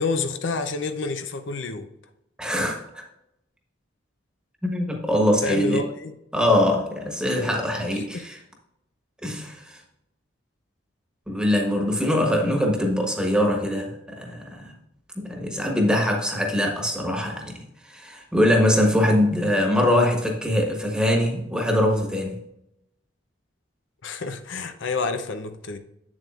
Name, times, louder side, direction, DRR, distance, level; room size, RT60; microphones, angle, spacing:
voice 1, 0.0-1.9 5.4-6.1 7.3-7.5 8.1-8.2 15.4-15.6 24.0-25.8, left 3 dB, 80° left, 0.7 m, -28 dB
voice 2, 2.4-3.0 4.6-5.8 6.3-8.4 9.2-9.8 11.3-14.7 15.1-17.6 17.8-22.4, left 1 dB, 5° right, 1.3 m, -23 dB
8.2 x 7.3 x 2.5 m
head